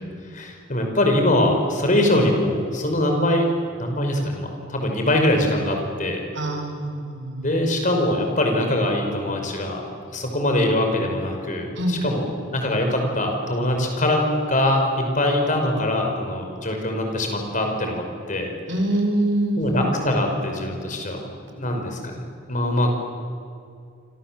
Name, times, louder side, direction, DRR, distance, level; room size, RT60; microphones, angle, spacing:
voice 1, 0.3-3.5 3.8-6.2 7.4-9.8 10.1-18.5 19.6-22.1 22.5-23.0, left 1 dB, 40° left, 3 dB, 5.5 m, -23 dB
voice 2, 6.4-7.5 11.8-11.9 18.7-19.9, right 1 dB, 75° right, 4 dB, 5.2 m, -24 dB
28.5 x 26.5 x 7.8 m, 2.4 s
head